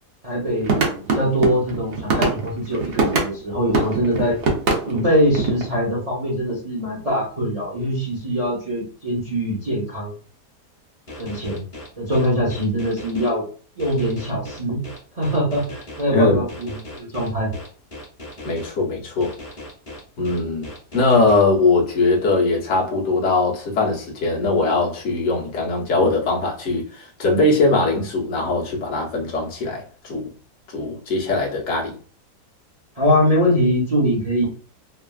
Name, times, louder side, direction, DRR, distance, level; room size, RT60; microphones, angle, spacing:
voice 1, 0.2-4.4 4.9-10.1 11.2-11.6 12.0-13.4 13.8-14.8 15.2-16.7 17.0-17.5 33.0-34.4, equal, 30° right, 0.8 m, -22 dB
sound 1, 0.6-3.3 3.7-5.7, right 3 dB, 75° right, 0.5 m, -22 dB
sound 2, 11.1-13.3 13.8-16.0 16.5-18.7 19.2-21.4, left 1 dB, 30° left, 1.3 m, -37 dB
voice 2, 16.1-16.4 18.4-19.3 20.2-20.7 20.9-30.2 30.7-31.9, left 3 dB, 50° left, 1.1 m, -20 dB
3.2 x 2.4 x 2.3 m
omnidirectional pair, 1.7 m